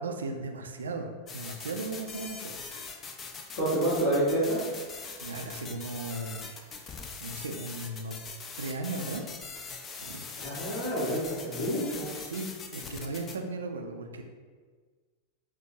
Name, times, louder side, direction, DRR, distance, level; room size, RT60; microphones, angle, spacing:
voice 1, 0.0-2.6 5.2-8.2 8.6-9.2 10.0-10.2 12.2-14.2, right 3 dB, 70° right, 4 dB, 0.4 m, -37 dB
sound 1, 1.3-13.4, left 4 dB, 25° left, 0.4 m, -42 dB
voice 2, 3.6-4.6 10.4-12.1, right 1 dB, 50° left, -11 dB, 1.2 m, -28 dB
5.8 x 2.1 x 2.7 m, 1.5 s
figure-of-eight pair, 90°, 0 cm